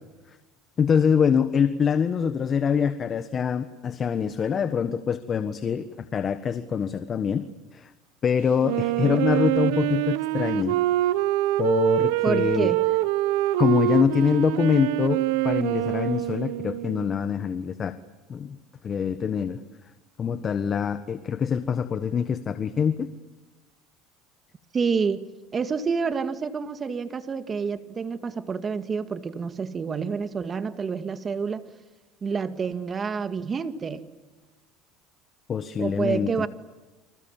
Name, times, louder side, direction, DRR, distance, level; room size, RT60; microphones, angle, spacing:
voice 1, 0.8-5.9 6.1-7.5 7.7-7.9 8.2-10.8 11.6-12.7 13.6-15.2 15.4-17.9 18.3-18.6 18.8-19.6 20.2-23.1 35.5-36.3, left 7 dB, 35° left, 11 dB, 1.4 m, -24 dB
Wind instrument woodwind instrument, 8.6-17.2, right 16 dB, 80° right, 1.1 m, -25 dB
voice 2, 12.2-12.8 24.7-25.2 25.5-31.6 32.2-34.1 35.8-36.5, right 5 dB, 30° right, 10 dB, 2.1 m, -28 dB
29.5 x 26.5 x 7.5 m, 1.2 s
supercardioid pair, 105°, 0 cm